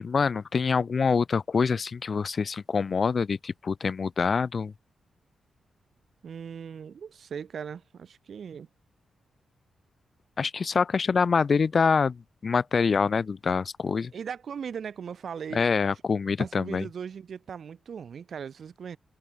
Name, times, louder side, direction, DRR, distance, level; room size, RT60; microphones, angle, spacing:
voice 1, 0.0-4.7 10.4-12.2 12.4-14.1 15.5-16.8, left 5 dB, 50° left, 1.0 m, -25 dB
voice 2, 6.2-8.7 14.1-15.6 16.4-19.0, right 7 dB, 65° right, 3.1 m, -38 dB
cardioid pair, 85°, 0 cm